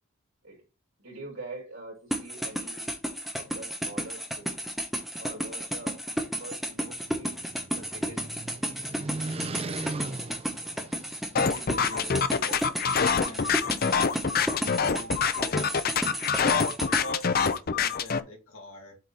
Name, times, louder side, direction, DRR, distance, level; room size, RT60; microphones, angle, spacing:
voice 1, 1.0-2.9 3.3-4.6 5.2-7.4 7.7-8.3, right 2 dB, 65° right, 4.1 m, -44 dB
sound 1, 2.1-17.0, equal, ahead, 1.1 m, -32 dB
sound 2, 6.8-11.6, right 2 dB, 25° right, 0.5 m, -38 dB
voice 2, 11.3-15.9 16.4-19.0, left 2 dB, 75° left, 2.5 m, -43 dB
sound 3, 11.4-18.2, left 6 dB, 40° left, 0.5 m, -25 dB
7.9 x 4.0 x 4.2 m
head